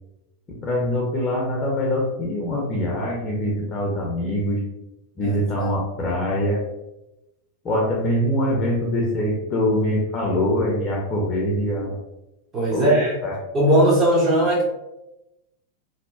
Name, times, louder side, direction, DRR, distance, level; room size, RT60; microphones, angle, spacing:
voice 1, 0.5-4.6 5.2-6.6 7.6-12.0 12.7-13.3, left 1 dB, 25° left, -2 dB, 0.5 m, -23 dB
voice 2, 5.2-5.7 12.5-13.1 13.5-14.6, right 1 dB, 30° right, -6 dB, 0.6 m, -19 dB
2.7 x 2.1 x 2.4 m, 0.94 s
figure-of-eight pair, 90°, 0 cm